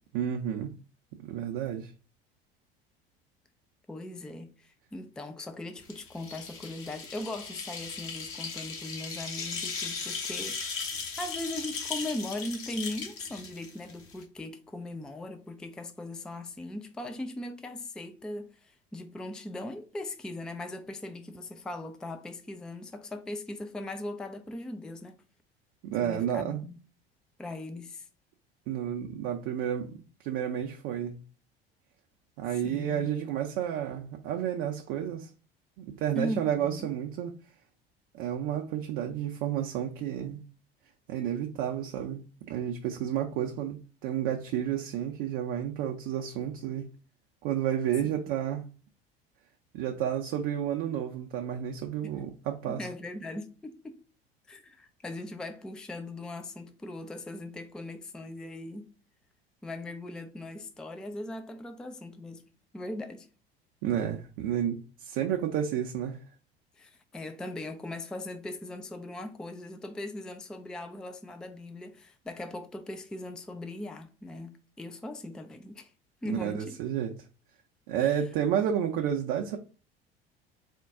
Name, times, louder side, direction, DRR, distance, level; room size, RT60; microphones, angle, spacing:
voice 1, 0.1-0.7 1.2-1.9 25.8-26.6 28.7-31.2 32.4-35.3 35.8-37.3 38.1-40.4 41.1-46.9 47.4-48.6 49.7-52.8 63.8-66.2 76.3-77.1 77.9-79.6, right 10 dB, 50° right, 0.6 m, -31 dB
voice 2, 3.9-25.2 26.0-26.8 27.4-28.1 32.6-33.1 36.1-36.9 48.0-48.3 52.6-54.0 54.5-58.9 59.6-62.4 62.7-63.3 66.8-75.9 76.2-76.7 78.0-78.2, left 1 dB, 5° left, 0.4 m, -39 dB
sound 1, 5.8-14.2, left 5 dB, 45° left, 1.2 m, -37 dB
4.3 x 2.2 x 3.6 m
figure-of-eight pair, 70°, 30 cm